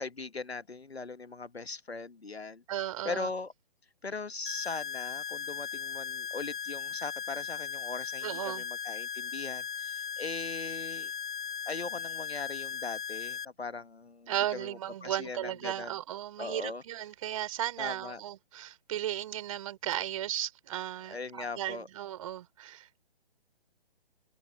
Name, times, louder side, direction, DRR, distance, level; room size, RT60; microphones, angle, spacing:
voice 1, 0.0-2.6 3.0-3.5 4.0-11.1 11.6-15.9 16.4-16.8 17.8-18.2 21.1-21.9, left 3 dB, 80° left, 1.3 m, -40 dB
voice 2, 2.7-3.3 8.2-8.6 14.3-23.0, right 12 dB, 35° right, 4.0 m, -35 dB
sound 1, 4.5-13.5, left 8 dB, 50° left, 0.6 m, -38 dB
open air
figure-of-eight pair, 140°, 31 cm